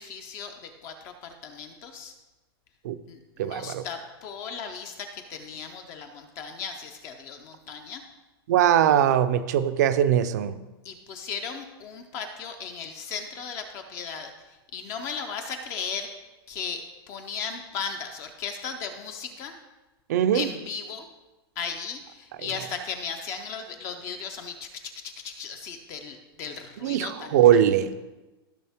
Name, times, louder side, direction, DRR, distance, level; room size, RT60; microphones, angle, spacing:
voice 1, 0.0-2.1 3.1-8.0 10.8-16.1 16.5-19.6 20.3-21.1 21.6-27.7, left 6 dB, 20° left, 6 dB, 0.5 m, -36 dB
voice 2, 3.4-3.8 8.5-10.6 20.1-20.5 26.8-27.9, right 10 dB, 45° right, 11 dB, 0.6 m, -21 dB
15.0 x 6.4 x 3.5 m, 1.1 s
supercardioid pair, 180°, 13 cm